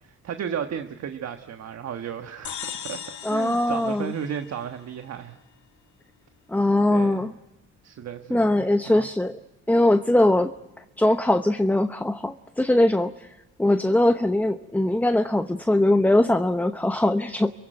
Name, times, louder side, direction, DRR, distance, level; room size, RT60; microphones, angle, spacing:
voice 1, 0.0-3.0 3.3-5.4 6.9-7.2 7.8-9.1, right 8 dB, 60° right, 7 dB, 1.4 m, -34 dB
sound 1, 2.4-5.0, left 9 dB, 70° left, 2.0 m, -38 dB
voice 2, 3.2-4.1 6.5-7.3 8.3-9.4 9.7-10.5 11.0-13.3 13.6-17.5, left 1 dB, 5° left, 8 dB, 0.9 m, -21 dB
28.0 x 17.0 x 9.2 m, 1.0 s
cardioid pair, 90°, 30 cm